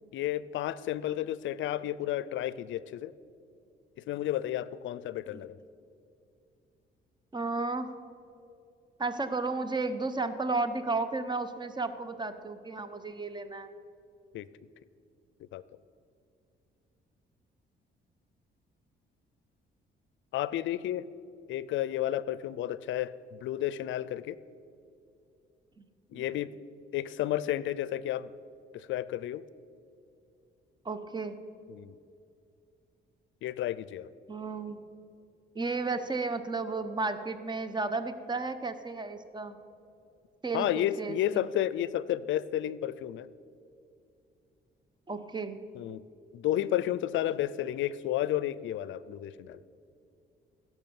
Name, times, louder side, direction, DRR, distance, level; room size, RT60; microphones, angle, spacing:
voice 1, 0.1-3.1 4.1-5.6 14.3-14.5 15.5-15.6 20.3-21.0 21.5-24.4 26.1-26.5 26.9-28.3 28.7-29.4 31.7-31.9 33.4-34.1 40.5-43.3 45.8-46.0 46.3-49.6, left 12 dB, 75° left, 18 dB, 0.5 m, -32 dB
voice 2, 7.3-7.9 9.0-13.7 25.8-25.9 26.1-26.2 30.8-31.4 34.3-34.8 35.5-39.6 40.4-41.5 45.1-45.6, right 3 dB, 20° right, 11 dB, 0.9 m, -33 dB
16.0 x 6.1 x 7.0 m, 2.5 s
cardioid pair, 90°, 20 cm